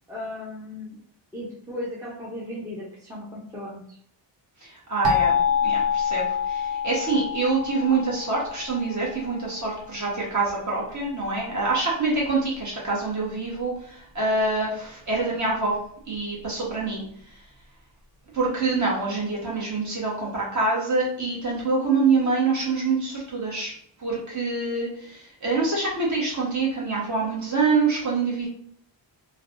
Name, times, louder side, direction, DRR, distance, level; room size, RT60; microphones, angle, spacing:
voice 1, 0.1-1.0 1.3-4.0 15.4-15.5, left 1 dB, 5° right, -5 dB, 0.5 m, -36 dB
voice 2, 4.6-5.3 5.6-15.8 16.1-17.3 18.3-23.7 24.0-28.5, right 3 dB, 40° right, -4 dB, 1.2 m, -25 dB
sound 1, 5.0-9.8, left 6 dB, 80° right, 0.9 m, -26 dB
3.3 x 2.2 x 2.5 m, 0.62 s
wide cardioid pair, 155°, 45 cm